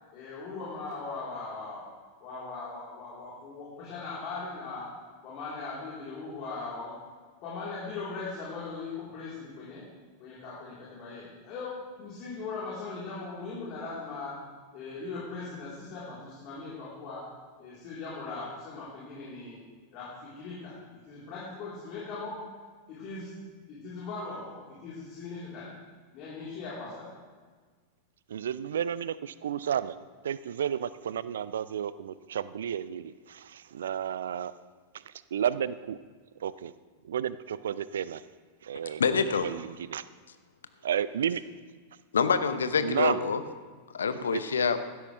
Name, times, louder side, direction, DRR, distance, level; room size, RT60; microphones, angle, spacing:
voice 1, 0.1-1.9 2.2-4.9 5.2-7.0 7.4-9.8 10.2-14.3 14.7-17.2 17.6-19.6 19.9-20.7 21.1-22.4 22.9-23.3 23.7-25.7 26.1-27.1, left 4 dB, 40° left, -8 dB, 3.7 m, -39 dB
voice 2, 28.3-29.9 30.2-34.5 35.3-36.0 36.4-36.7 37.0-38.2 38.6-39.0 39.4-40.0 40.8-41.4 42.8-43.2 44.3-44.4, right 9 dB, 65° right, 16 dB, 0.4 m, -32 dB
voice 3, 38.9-39.5 42.1-43.4 43.9-44.8, left 5 dB, 70° left, 10 dB, 0.8 m, -26 dB
15.5 x 12.5 x 3.3 m, 1.5 s
figure-of-eight pair, 90°, 0 cm